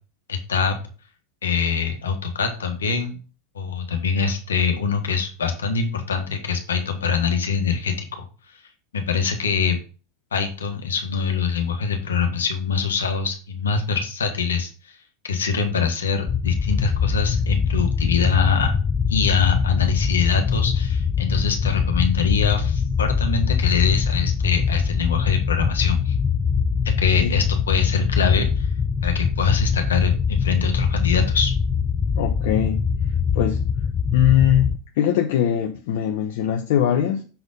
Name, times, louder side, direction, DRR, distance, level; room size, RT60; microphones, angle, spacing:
voice 1, 0.3-0.8 1.4-3.2 3.5-8.2 8.9-9.8 10.3-15.0 15.2-18.7 19.1-26.1 26.8-28.7 29.0-31.5, left 6 dB, 80° left, 1.4 m, -23 dB
sound 1, 16.3-34.8, left 6 dB, 25° left, 0.6 m, -23 dB
voice 2, 32.1-32.9 33.3-33.6 34.1-37.2, left 10 dB, 65° left, 0.8 m, -21 dB
6.9 x 4.1 x 5.2 m
hypercardioid pair, 90°, 0 cm